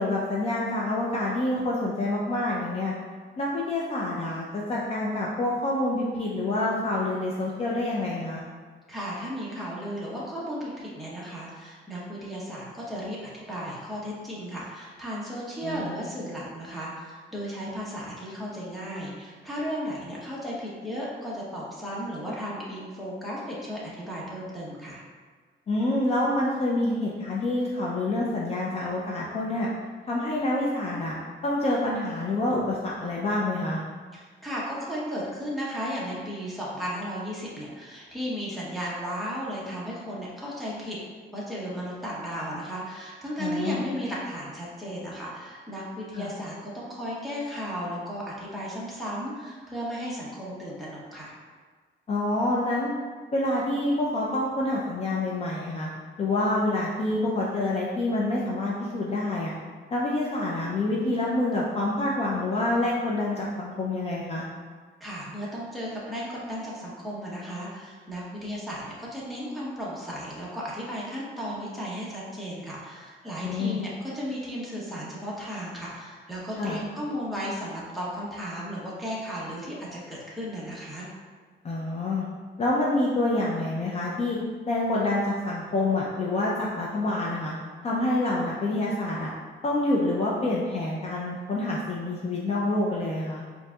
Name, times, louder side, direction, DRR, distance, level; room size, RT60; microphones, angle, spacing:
voice 1, 0.0-2.9 3.4-8.4 15.6-16.0 25.7-29.7 30.1-31.2 31.4-33.8 43.4-43.8 46.1-46.3 52.1-52.9 53.3-55.9 56.2-59.5 59.9-64.4 73.4-73.8 76.6-76.8 81.6-82.2 82.6-84.4 84.7-87.5 87.8-89.3 89.6-93.4, left 2 dB, 35° left, -4 dB, 0.4 m, -27 dB
voice 2, 8.9-25.0 34.1-41.0 41.3-51.3 65.0-81.1, equal, ahead, -7 dB, 0.9 m, -35 dB
7.4 x 2.6 x 2.3 m, 1.5 s
wide cardioid pair, 180°, 19 cm